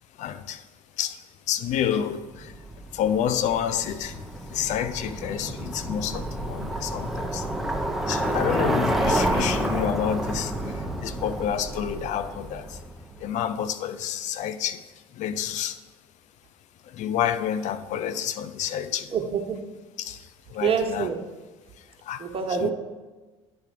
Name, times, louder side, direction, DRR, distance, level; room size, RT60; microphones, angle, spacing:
voice 1, 0.2-0.7 1.0-2.6 2.9-7.5 8.1-12.8 13.2-14.8 15.1-15.8 16.8-19.1 20.0-21.1 21.8-22.3 22.6-22.7, left 9 dB, 60° left, 12 dB, 0.5 m, -29 dB
Bicycle, 2.3-13.2, right 1 dB, ahead, 0.8 m, -29 dB
voice 2, 19.1-19.6 20.6-21.2 22.2-22.7, right 6 dB, 40° right, 4 dB, 1.2 m, -26 dB
10.0 x 3.4 x 5.2 m, 1.3 s
hypercardioid pair, 70°, 14 cm